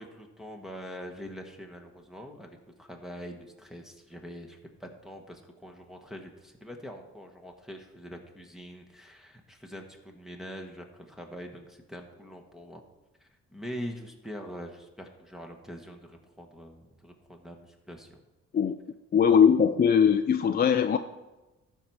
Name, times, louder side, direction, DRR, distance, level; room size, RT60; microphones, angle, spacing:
voice 1, 0.0-12.8 13.2-18.2, equal, ahead, 1 dB, 1.3 m, -44 dB
voice 2, 19.1-21.0, left 7 dB, 30° left, 8 dB, 0.4 m, -21 dB
12.5 x 4.7 x 5.5 m, 1.1 s
cardioid pair, 90°, 30 cm